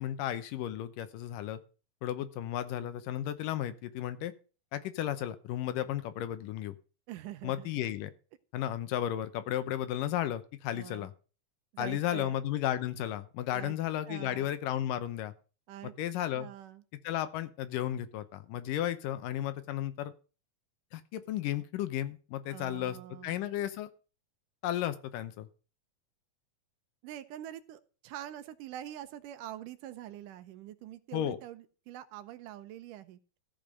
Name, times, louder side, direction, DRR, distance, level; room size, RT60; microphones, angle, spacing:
voice 1, 0.0-1.6 2.0-4.3 4.7-6.7 7.4-8.1 8.5-11.1 11.8-15.3 15.8-16.5 17.0-20.1 20.9-23.0 23.2-23.9 24.6-25.5 31.1-31.4, left 12 dB, 80° left, 12 dB, 2.5 m, -34 dB
voice 2, 7.1-7.7 10.7-11.1 11.7-12.4 13.5-13.7 14.1-14.5 15.7-15.9 16.3-16.8 22.5-23.5 27.0-33.2, right 12 dB, 75° right, 12 dB, 2.2 m, -45 dB
14.5 x 5.2 x 6.5 m, 0.35 s
omnidirectional pair, 3.9 m